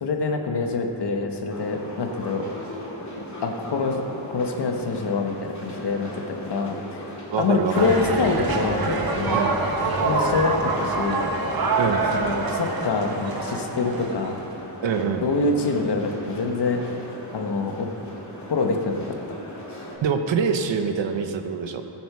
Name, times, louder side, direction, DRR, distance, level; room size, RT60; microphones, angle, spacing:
voice 1, 0.0-2.5 3.4-4.0 4.3-9.4 10.0-11.2 12.1-14.4 15.2-17.0 17.3-17.9 18.5-19.1, left 4 dB, 65° left, 3 dB, 1.4 m, -26 dB
sound 1, 1.5-20.0, left 1 dB, 40° left, 2.7 m, -38 dB
voice 2, 7.3-7.9 9.3-9.6 11.8-12.1 14.8-15.2 20.0-21.8, right 6 dB, 85° right, 6 dB, 1.1 m, -25 dB
sound 2, 7.7-14.6, right 3 dB, 55° right, 1.5 m, -25 dB
15.5 x 8.9 x 4.8 m, 3.0 s
wide cardioid pair, 100°, 43 cm